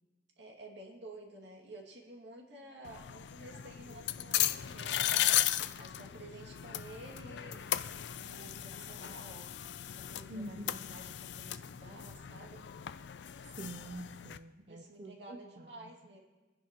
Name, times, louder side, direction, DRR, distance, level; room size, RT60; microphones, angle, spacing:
voice 1, 0.4-9.5 9.9-12.7 14.7-16.2, right 2 dB, 75° right, 0 dB, 2.2 m, -52 dB
sound 1, 2.8-14.4, left 12 dB, 70° left, 0.4 m, -36 dB
voice 2, 10.3-10.8 13.6-15.9, right 1 dB, 45° right, 3 dB, 0.7 m, -46 dB
23.5 x 10.0 x 3.0 m, 1.2 s
head